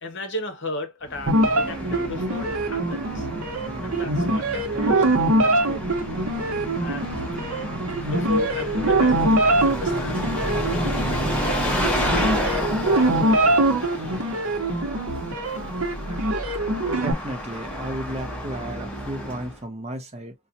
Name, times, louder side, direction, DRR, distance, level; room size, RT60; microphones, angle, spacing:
voice 1, 0.0-3.3 3.8-5.8 6.8-7.1 8.0-10.3 10.7-13.6, left 1 dB, 55° left, 0.9 m, -35 dB
Bus, 1.0-19.6, equal, 5° left, 0.9 m, -30 dB
sound 1, 1.3-17.1, right 2 dB, 75° right, 0.9 m, -23 dB
voice 2, 16.9-20.3, right 1 dB, 30° right, 0.6 m, -34 dB
4.1 x 2.3 x 2.6 m
head